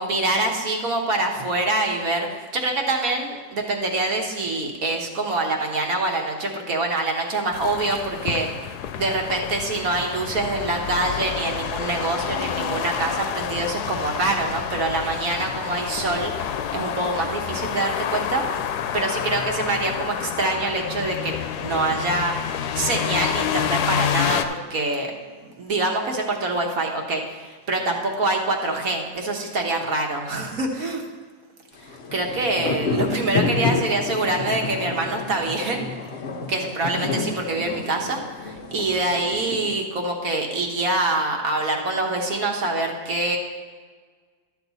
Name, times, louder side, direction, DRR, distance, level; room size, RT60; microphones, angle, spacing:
voice 1, 0.0-18.4 18.9-21.3 21.6-22.3 22.7-25.1 25.4-31.0 31.8-35.8 36.5-43.4, right 2 dB, 65° right, 1 dB, 1.5 m, -25 dB
sound 1, 7.5-24.5, left 9 dB, 85° left, 1.1 m, -29 dB
sound 2, 31.8-39.9, left 4 dB, 55° left, 0.8 m, -29 dB
11.5 x 7.2 x 4.0 m, 1.5 s
omnidirectional pair, 1.7 m